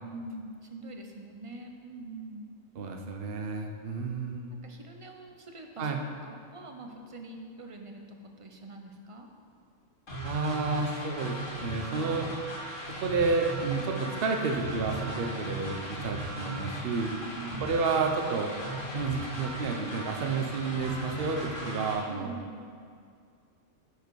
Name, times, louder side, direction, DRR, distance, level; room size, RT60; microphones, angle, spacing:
voice 1, 0.0-2.5 4.6-9.3 17.2-17.6 22.1-22.6, right 2 dB, 35° right, 3 dB, 0.6 m, -44 dB
voice 2, 2.8-4.5 5.8-6.0 10.2-11.4 11.6-12.3 13.0-17.1 17.6-18.5 18.9-22.3, right 4 dB, 55° right, 3 dB, 1.0 m, -30 dB
sound 1, 10.1-21.9, right 1 dB, 80° left, 2.7 m, -37 dB
12.0 x 4.8 x 4.7 m, 2.2 s
omnidirectional pair, 1.3 m